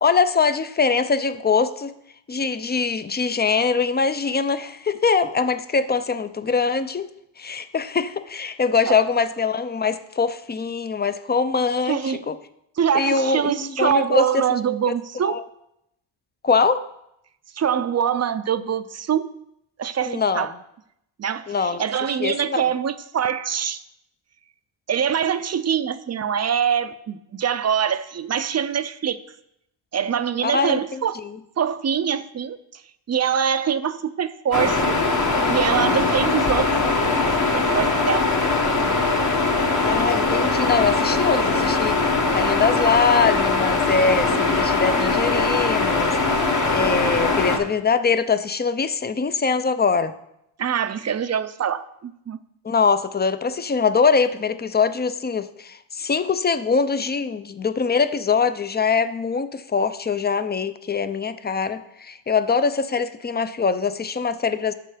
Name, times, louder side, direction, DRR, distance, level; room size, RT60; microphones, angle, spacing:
voice 1, 0.0-1.9 2.3-7.1 7.4-12.4 12.9-14.4 14.9-15.0 15.2-15.4 16.4-16.8 20.1-20.5 21.5-21.8 22.2-22.6 30.4-31.4 39.8-46.2 46.7-50.1 52.6-64.7, left 5 dB, 25° left, 12 dB, 0.4 m, -22 dB
voice 2, 11.9-12.2 12.8-15.4 17.6-19.3 19.8-20.5 21.2-23.8 24.9-29.2 29.9-31.2 31.6-32.8 33.1-35.0 35.5-37.1 37.5-38.3 50.6-52.4, right 8 dB, 35° right, 13 dB, 0.5 m, -24 dB
sound 1, 34.5-47.6, left 3 dB, 40° left, 1.2 m, -21 dB
7.2 x 6.7 x 5.0 m, 0.79 s
cardioid pair, 95°, 46 cm